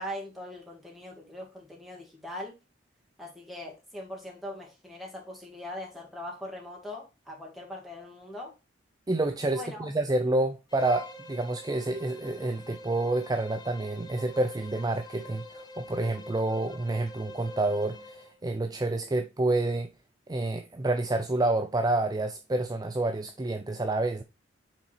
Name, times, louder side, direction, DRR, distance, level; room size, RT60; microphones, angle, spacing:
voice 1, 0.0-2.6 3.2-8.5 9.5-9.9, left 1 dB, ahead, 2.1 m, -41 dB
voice 2, 9.1-19.9 20.3-24.2, right 2 dB, 20° right, 0.5 m, -28 dB
Bowed string instrument, 10.7-18.4, left 1 dB, 20° left, 0.8 m, -45 dB
6.0 x 4.1 x 4.2 m
head